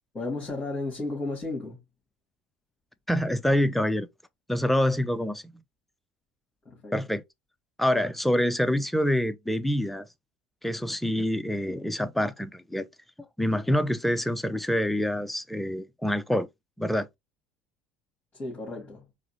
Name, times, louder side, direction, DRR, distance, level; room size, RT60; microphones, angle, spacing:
voice 1, 0.1-1.8 6.7-7.0 18.3-19.1, left 2 dB, 25° left, 2.0 m, -33 dB
voice 2, 3.1-4.1 4.5-5.5 6.9-7.2 7.8-10.1 10.6-12.9 13.4-16.5 16.8-17.1, equal, 5° left, 0.5 m, -26 dB
4.7 x 2.1 x 2.9 m
hypercardioid pair, 70°, 5 cm